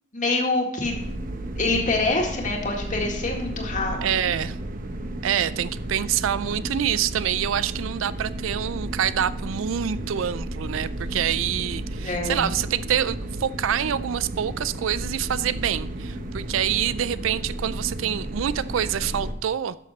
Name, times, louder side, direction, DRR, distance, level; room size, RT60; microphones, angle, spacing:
voice 1, 0.1-1.0 1.6-4.0 12.0-12.5, left 3 dB, 40° left, 2.0 m, -25 dB
sound 1, 0.8-19.3, right 1 dB, 45° right, 0.9 m, -33 dB
voice 2, 4.0-4.6 5.2-19.8, right 9 dB, 80° right, 0.4 m, -26 dB
12.5 x 6.6 x 4.2 m
head